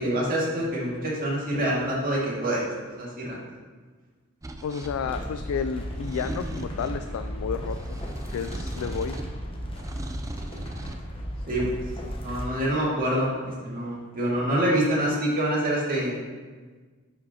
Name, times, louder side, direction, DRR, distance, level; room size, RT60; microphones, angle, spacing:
voice 1, 0.0-3.4 5.0-5.1 11.5-11.6 12.2-16.2, right 1 dB, 40° right, -5 dB, 2.0 m, -26 dB
sound 1, 4.4-4.9 5.9-7.0 7.6-9.4 9.7-11.0, right 1 dB, 15° right, 0.4 m, -38 dB
voice 2, 4.6-8.0 8.3-9.1, left 6 dB, 70° left, 8 dB, 0.3 m, -31 dB
sound 2, 4.8-12.4, equal, 25° left, 0.9 m, -35 dB
10.5 x 5.0 x 2.8 m, 1.4 s
head